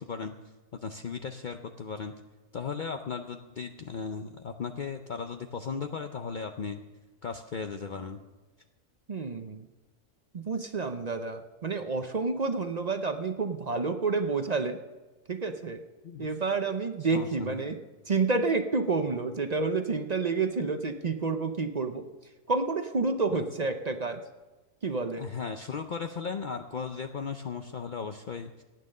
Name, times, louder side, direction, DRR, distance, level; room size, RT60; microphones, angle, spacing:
voice 1, 0.7-2.1 2.5-6.8 7.2-8.2 16.0-16.3 17.1-17.6 23.3-23.4 25.2-28.6, left 5 dB, 65° left, 6 dB, 0.4 m, -36 dB
voice 2, 9.1-9.7 10.3-14.8 15.3-15.8 16.2-17.8 18.1-22.1 22.5-24.2 24.8-25.3, right 4 dB, 45° right, 7 dB, 0.5 m, -29 dB
15.0 x 9.5 x 6.5 m, 1.2 s
omnidirectional pair, 1.6 m